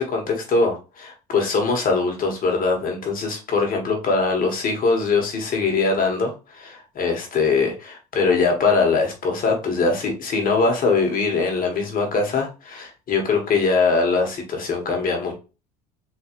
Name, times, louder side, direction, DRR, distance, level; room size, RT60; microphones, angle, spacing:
voice 1, 0.0-15.3, left 4 dB, 40° left, 2 dB, 1.7 m, -22 dB
3.9 x 3.1 x 3.1 m, 0.31 s
supercardioid pair, 100°, 21 cm